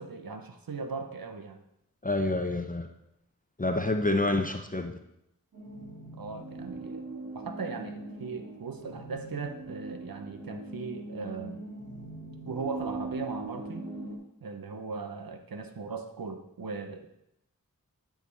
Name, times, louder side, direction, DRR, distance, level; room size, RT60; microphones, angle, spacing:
voice 1, 0.0-1.6 6.1-7.0 7.3-11.6 12.4-13.9 14.4-17.1, right 4 dB, 80° right, 6 dB, 0.9 m, -38 dB
voice 2, 2.0-2.9 3.6-5.0, left 2 dB, 25° left, 6 dB, 0.6 m, -28 dB
sound 1, 5.5-14.2, right 2 dB, 45° right, 2.0 m, -41 dB
11.5 x 5.1 x 4.0 m, 0.81 s
wide cardioid pair, 50°, 35 cm